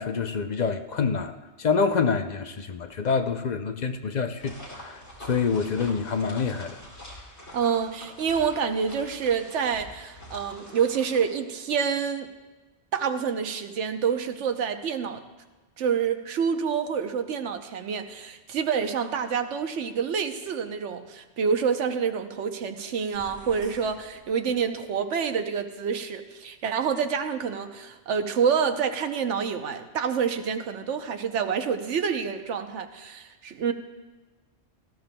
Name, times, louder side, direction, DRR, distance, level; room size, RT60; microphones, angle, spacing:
voice 1, 0.0-1.3 1.6-6.8, left 5 dB, 50° left, 7 dB, 0.6 m, -27 dB
sound 1, 4.4-11.2, left 1 dB, 70° left, 3.0 m, -45 dB
voice 2, 7.5-12.3 12.9-15.2 15.8-33.7, right 6 dB, 90° right, 7 dB, 1.1 m, -27 dB
sound 2, 23.1-25.0, equal, 65° right, 2.6 m, -50 dB
18.0 x 13.5 x 2.2 m, 1.2 s
omnidirectional pair, 1.2 m